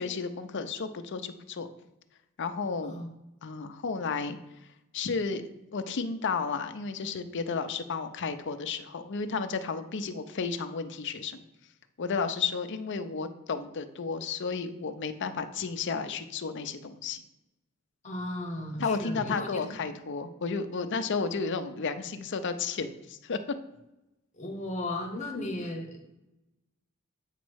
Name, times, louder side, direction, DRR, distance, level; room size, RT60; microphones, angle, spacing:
voice 1, 0.0-1.7 2.4-3.0 3.4-4.4 4.9-5.4 5.7-11.4 12.0-17.2 18.8-23.4, left 5 dB, 55° left, 9 dB, 0.6 m, -32 dB
voice 2, 18.0-19.8 24.3-26.2, left 1 dB, 35° left, 3 dB, 1.1 m, -36 dB
8.2 x 3.1 x 6.2 m, 0.92 s
head